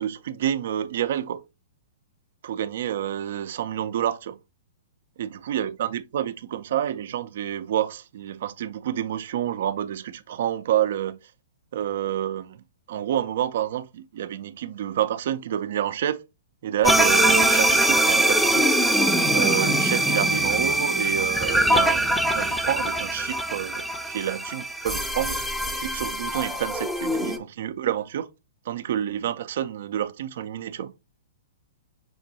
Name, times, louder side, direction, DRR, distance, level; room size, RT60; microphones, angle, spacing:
voice 1, 0.0-1.4 2.4-4.4 5.2-11.2 11.7-12.6 12.9-16.2 16.6-18.8 19.3-25.4 25.7-28.3 28.7-30.9, right 10 dB, 60° right, 0.4 m, -28 dB
sound 1, 16.8-27.4, right 1 dB, ahead, 0.4 m, -22 dB
5.1 x 3.5 x 2.7 m
hypercardioid pair, 120°, 0 cm